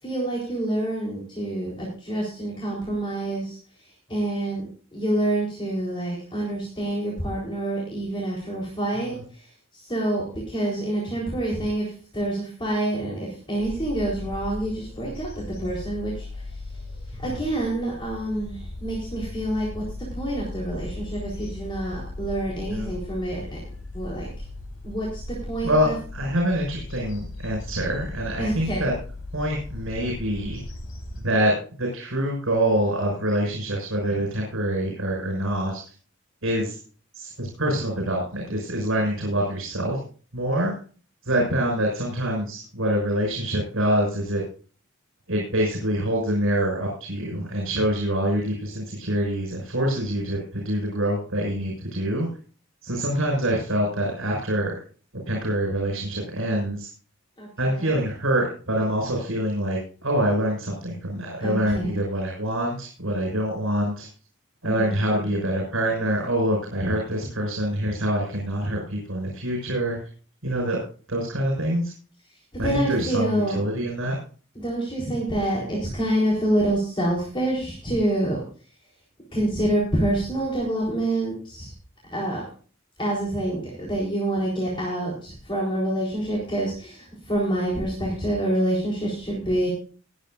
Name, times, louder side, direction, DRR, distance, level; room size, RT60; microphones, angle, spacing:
voice 1, 0.0-3.6 4.1-16.4 17.2-19.8 20.1-23.6 23.9-24.3 24.8-25.9 28.4-28.8 57.4-57.9 61.4-62.0 64.6-65.0 72.5-73.6 74.6-78.4 79.3-81.7 82.1-82.4 83.0-89.7, right 1 dB, 25° left, -4 dB, 4.0 m, -27 dB
sound 1, 13.6-31.2, left 2 dB, 75° left, 4.0 m, -37 dB
voice 2, 25.6-28.9 29.3-30.6 31.2-35.8 36.4-36.8 37.1-40.0 40.3-40.8 41.2-44.4 45.3-52.3 52.8-54.8 55.2-56.9 57.6-64.1 64.6-70.0 70.4-70.8 71.1-71.9 72.6-74.2, right 1 dB, 75° right, 0 dB, 5.9 m, -25 dB
21.0 x 10.0 x 2.5 m, 0.40 s
head